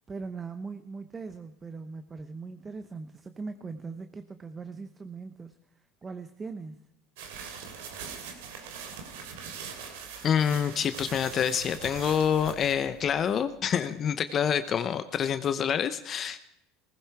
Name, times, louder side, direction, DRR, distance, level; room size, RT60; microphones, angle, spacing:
voice 1, 0.1-5.6 6.0-6.8, right 4 dB, 20° right, 10 dB, 0.9 m, -40 dB
sound 1, 7.2-13.5, right 6 dB, 85° right, 3.0 m, -42 dB
voice 2, 10.2-16.4, left 8 dB, 35° left, 11 dB, 0.8 m, -27 dB
19.0 x 15.5 x 4.7 m, 0.80 s
supercardioid pair, 115°, 0 cm